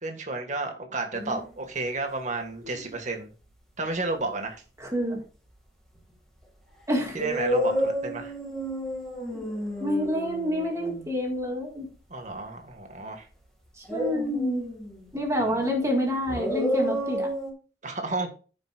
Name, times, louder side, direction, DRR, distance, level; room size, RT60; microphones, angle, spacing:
voice 1, 0.0-3.3 3.8-4.6 7.1-8.3 12.1-13.3 15.4-15.6 17.8-18.4, right 3 dB, 45° right, 1.8 m, -32 dB
sound 1, 1.1-1.5 2.4-3.0 6.0-6.1 7.1-11.1 13.9-15.1 16.3-17.5, equal, ahead, 2.1 m, -30 dB
voice 2, 4.8-5.2 6.9-7.2 9.3-9.4 9.8-11.9 13.8-14.7 15.1-17.3, equal, 20° right, 1.8 m, -28 dB
15.0 x 5.3 x 2.5 m
head